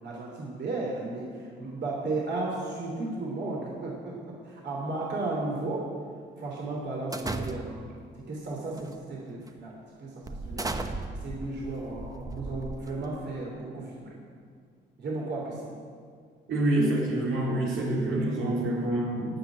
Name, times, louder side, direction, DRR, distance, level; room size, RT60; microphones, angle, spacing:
voice 1, 0.0-5.9 6.4-10.7 11.1-14.2 15.0-15.7, right 2 dB, 60° right, -3 dB, 3.1 m, -34 dB
sound 1, 7.1-7.9 8.7-9.0 9.5-9.6 10.3-13.2, right 2 dB, 15° right, 1.0 m, -36 dB
voice 2, 16.5-19.4, right 1 dB, 85° right, -4 dB, 4.2 m, -27 dB
17.0 x 6.3 x 10.0 m, 2.1 s
cardioid pair, 90°, 20 cm